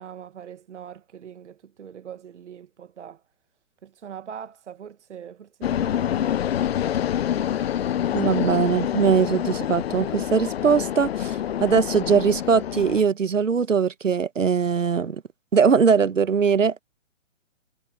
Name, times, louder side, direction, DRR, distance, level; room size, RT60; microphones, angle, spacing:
voice 1, 0.0-3.2 3.8-6.4 15.5-15.6, right 8 dB, 65° right, 1.2 m, -42 dB
sound 1, 5.6-13.0, left 10 dB, 55° left, 0.5 m, -26 dB
voice 2, 8.1-15.2 15.5-16.7, right 6 dB, 90° right, 1.2 m, -21 dB
hypercardioid pair, 140°, 37 cm